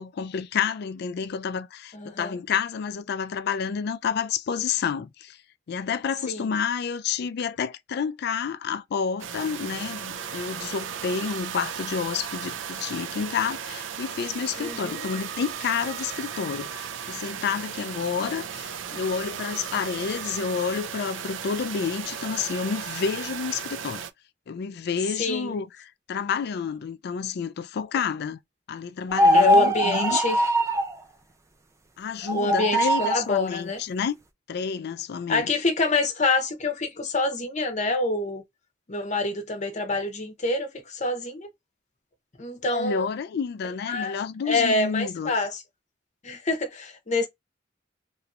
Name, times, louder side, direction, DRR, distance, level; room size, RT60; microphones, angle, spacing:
voice 1, 0.0-5.4 5.7-24.0 24.5-28.4 28.7-30.2 32.0-34.2 34.5-35.5 42.7-45.3, left 6 dB, 60° left, 0.3 m, -29 dB
voice 2, 1.9-2.4 6.3-6.5 14.6-15.0 25.2-25.6 29.3-30.4 32.3-33.8 35.3-38.4 38.9-41.5 42.4-43.1 43.9-44.2 44.5-45.6 46.2-47.3, left 3 dB, 40° left, 0.8 m, -26 dB
sound 1, 9.2-24.1, right 8 dB, 85° right, 0.4 m, -36 dB
sound 2, 29.1-30.9 32.2-33.3, equal, 15° right, 0.4 m, -21 dB
3.0 x 2.8 x 2.4 m
head